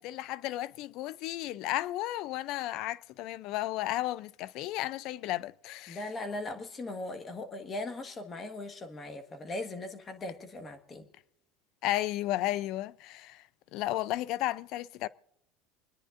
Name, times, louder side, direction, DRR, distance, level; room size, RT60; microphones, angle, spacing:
voice 1, 0.0-6.0 11.8-13.4 13.7-15.1, left 15 dB, 65° left, 0.4 m, -33 dB
voice 2, 5.9-11.1, left 2 dB, 30° left, 1.5 m, -39 dB
28.5 x 9.9 x 2.5 m
supercardioid pair, 100°, 0 cm